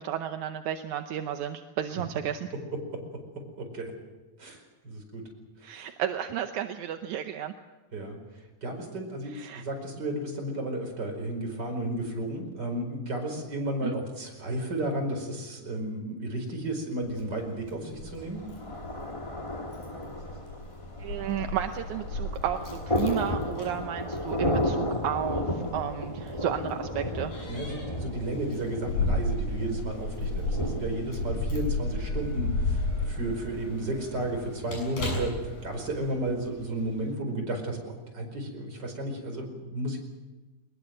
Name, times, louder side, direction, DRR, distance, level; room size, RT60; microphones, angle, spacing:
voice 1, 0.0-2.5 5.6-7.5 9.3-9.6 13.8-13.9 21.0-27.3, right 10 dB, 70° right, 6 dB, 1.9 m, -33 dB
voice 2, 2.7-3.0 3.3-3.9 4.4-5.3 5.6-5.9 7.9-18.4 27.5-40.0, right 1 dB, 25° right, 2 dB, 5.3 m, -33 dB
Keys jangling, 17.0-36.1, left 2 dB, 65° left, 8.6 m, -34 dB
Thunder, 18.1-37.1, left 1 dB, 40° left, 0.4 m, -35 dB
22.5 x 21.0 x 7.9 m, 1.1 s
omnidirectional pair, 4.3 m